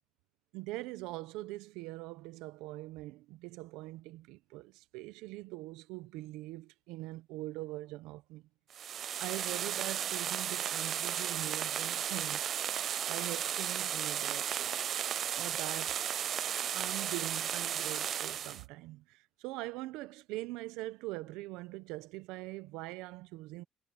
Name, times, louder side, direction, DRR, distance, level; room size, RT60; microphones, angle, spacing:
voice 1, 0.5-8.4 9.2-12.4 13.1-16.0 16.7-23.6, right 19 dB, 80° right, 1.3 m, -43 dB
sound 1, 8.7-18.6, right 9 dB, 55° right, 0.3 m, -34 dB
supercardioid pair, 70°, 0 cm